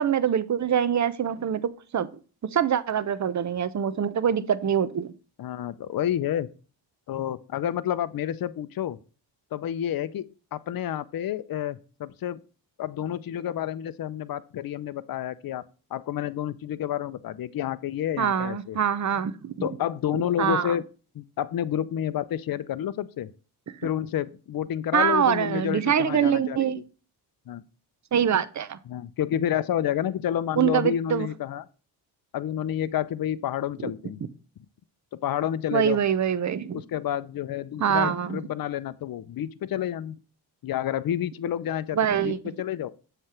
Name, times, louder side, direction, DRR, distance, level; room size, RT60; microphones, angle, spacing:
voice 1, 0.0-2.1 2.5-5.1 18.2-19.7 20.4-20.7 24.9-26.8 28.1-28.8 30.6-31.3 35.7-36.8 37.8-38.4 41.9-42.4, right 8 dB, 35° right, 0.8 m, -24 dB
voice 2, 5.4-6.5 7.1-9.0 9.5-12.4 12.8-15.6 15.9-18.8 19.6-20.9 21.1-23.3 23.8-26.8 27.5-27.6 28.9-31.6 32.3-34.2 35.2-36.0 36.7-40.2 40.6-42.9, left 10 dB, 45° left, 0.6 m, -29 dB
7.3 x 3.4 x 5.9 m
supercardioid pair, 50°, 49 cm